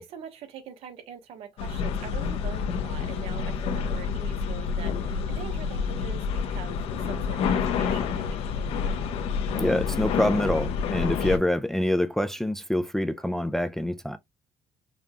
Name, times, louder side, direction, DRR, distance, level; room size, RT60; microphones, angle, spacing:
voice 1, 0.0-9.0, right 8 dB, 80° right, 1.0 m, -43 dB
sound 1, 1.6-11.4, left 6 dB, 80° left, 0.7 m, -28 dB
voice 2, 9.6-14.2, left 1 dB, 5° left, 0.3 m, -26 dB
5.2 x 2.3 x 2.8 m
cardioid pair, 105°, 10 cm